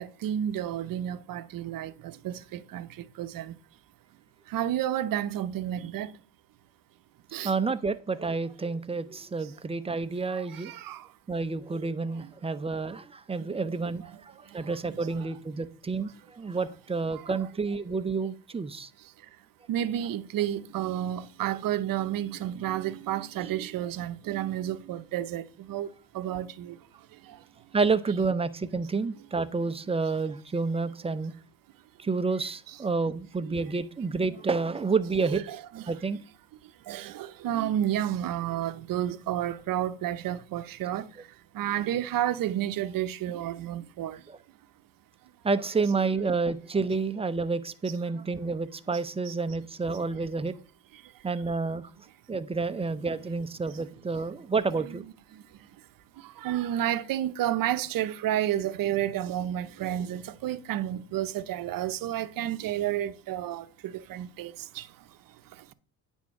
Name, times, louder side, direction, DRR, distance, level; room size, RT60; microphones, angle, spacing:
voice 1, 0.0-3.5 4.5-6.1 7.3-7.5 10.3-11.0 13.6-13.7 15.0-15.1 17.1-17.2 19.7-25.9 26.1-26.8 34.2-34.3 35.3-35.9 36.9-41.1 41.5-44.2 49.3-49.4 54.9-55.0 55.3-55.4 56.4-64.9, right 11 dB, 50° right, 0.8 m, -31 dB
voice 2, 7.4-10.7 11.3-18.9 27.7-31.3 32.0-35.4 35.9-36.2 44.3-44.4 45.4-50.5 51.2-51.9 52.3-55.0, right 4 dB, 15° right, 0.6 m, -29 dB
9.3 x 3.6 x 6.3 m
supercardioid pair, 100°, 43 cm